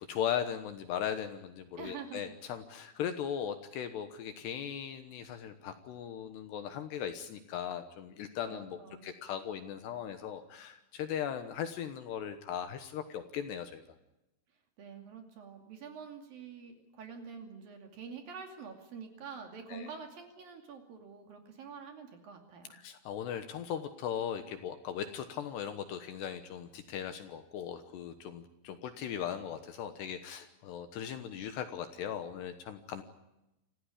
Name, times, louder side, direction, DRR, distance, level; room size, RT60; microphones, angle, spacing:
voice 1, 0.1-13.8 19.7-19.9 22.7-33.0, left 9 dB, 70° left, 8 dB, 3.0 m, -38 dB
voice 2, 1.8-2.4 8.5-9.1 14.8-22.8, right 6 dB, 50° right, 4 dB, 3.8 m, -47 dB
26.5 x 15.0 x 9.9 m, 0.93 s
omnidirectional pair, 5.7 m